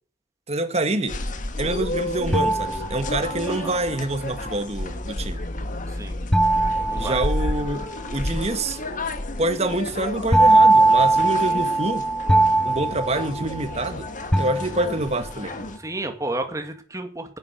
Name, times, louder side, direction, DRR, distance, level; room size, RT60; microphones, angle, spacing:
voice 1, 0.5-1.2 1.6-5.4 6.9-7.9 8.1-8.8 9.4-12.0 12.6-14.1 14.4-15.5, right 2 dB, 35° right, 1.7 m, -26 dB
sound 1, 1.1-15.8, left 2 dB, 45° left, 1.6 m, -31 dB
sound 2, 2.3-3.5 6.3-7.9 10.3-13.9 14.3-15.2, right 2 dB, 5° left, 0.5 m, -20 dB
voice 2, 6.9-7.2 11.4-11.5 15.8-17.4, right 2 dB, 20° right, 2.0 m, -31 dB
10.5 x 9.9 x 8.3 m
head